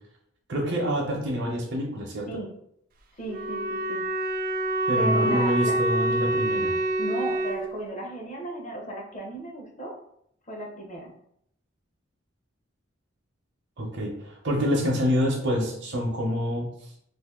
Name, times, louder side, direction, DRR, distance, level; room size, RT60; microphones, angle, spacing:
voice 1, 0.5-2.3 4.9-6.7 13.8-16.7, equal, 65° right, -2 dB, 0.8 m, -27 dB
voice 2, 3.1-4.1 5.0-5.8 7.0-10.0 10.5-11.1, right 1 dB, 40° left, 1 dB, 0.7 m, -35 dB
Wind instrument woodwind instrument, 3.3-7.6, right 1 dB, 50° right, 0.4 m, -26 dB
2.6 x 2.6 x 3.6 m, 0.71 s
head